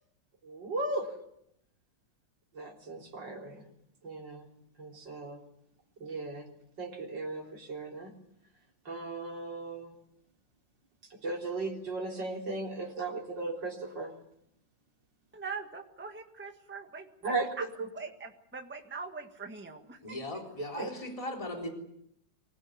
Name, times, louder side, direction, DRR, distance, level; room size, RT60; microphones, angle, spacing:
voice 1, 0.4-1.1 2.5-3.7 4.0-4.5 4.8-5.4 6.0-6.5 6.8-8.1 8.8-9.9 11.1-14.1 17.2-17.9 20.8-20.9, right 3 dB, 70° right, 0 dB, 4.4 m, -36 dB
voice 2, 15.3-17.6 17.9-20.2 20.8-20.9, right 4 dB, 5° right, 5 dB, 1.6 m, -42 dB
voice 3, 20.0-21.7, left 1 dB, 15° left, 2 dB, 3.8 m, -38 dB
24.5 x 16.5 x 9.5 m, 0.74 s
omnidirectional pair, 2.0 m